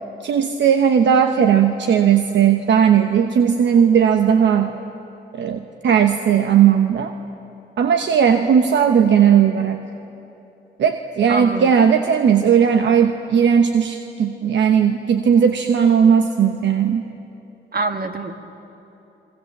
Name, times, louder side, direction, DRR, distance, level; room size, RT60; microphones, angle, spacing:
voice 1, 0.2-4.8 5.3-7.2 7.8-9.8 10.8-17.0, right 8 dB, 75° right, 6 dB, 1.1 m, -16 dB
voice 2, 11.3-11.9 17.7-18.4, right 3 dB, 55° right, 6 dB, 2.1 m, -25 dB
27.5 x 22.0 x 7.4 m, 3.0 s
supercardioid pair, 55°, 19 cm